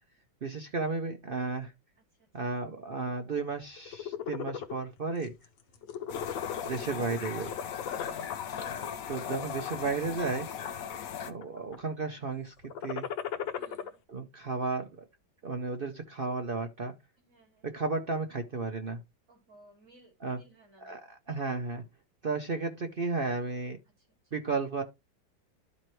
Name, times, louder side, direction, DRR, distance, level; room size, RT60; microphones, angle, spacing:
voice 1, 0.4-1.7 2.3-5.3 6.6-7.6 9.1-10.5 11.2-13.1 14.1-14.9 15.4-16.9 17.6-19.0 20.2-20.4 20.8-21.8 22.2-23.8 24.3-24.8, right 4 dB, 70° right, 0.5 m, -33 dB
sound 1, 3.8-4.8 5.2-5.5 5.8-7.0 7.4-8.5 9.1-9.6 10.2-11.0 11.2-11.8 12.6-13.9, left 8 dB, 80° left, 1.7 m, -37 dB
voice 2, 5.7-6.1 8.1-8.2 13.6-14.0 17.2-17.7 19.3-21.0, right 1 dB, 45° right, 3.9 m, -60 dB
sound 2, 6.1-11.3, left 8 dB, 60° left, 1.0 m, -38 dB
12.5 x 4.4 x 3.1 m
omnidirectional pair, 2.0 m